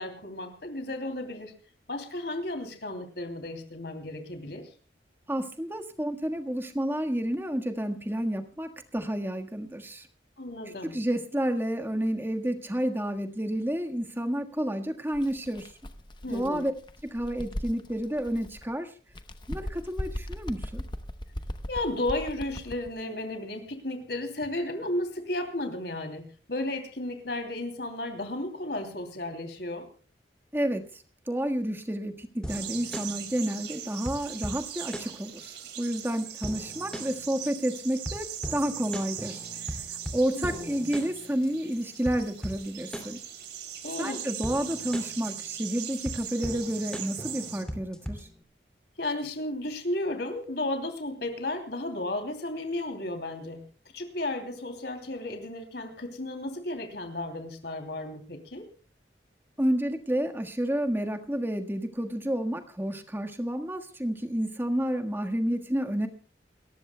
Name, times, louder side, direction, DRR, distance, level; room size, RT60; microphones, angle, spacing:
voice 1, 0.0-1.5 1.9-4.6 10.4-11.0 16.2-16.6 21.7-29.9 40.3-40.8 43.8-44.2 49.0-53.6 53.9-58.6, left 1 dB, 65° left, 6 dB, 3.0 m, -34 dB
voice 2, 5.3-10.1 10.8-15.7 16.3-16.7 17.0-18.9 19.5-20.8 30.5-43.2 44.0-48.3 59.6-66.1, equal, 10° right, 5 dB, 1.5 m, -30 dB
Bird, 15.1-18.7 19.1-22.9, equal, 25° left, 0.9 m, -38 dB
sound 1, 32.4-48.4, equal, 5° left, 2.5 m, -40 dB
sound 2, 32.5-47.6, right 10 dB, 70° right, 3.3 m, -40 dB
28.5 x 14.5 x 2.2 m, 0.38 s
head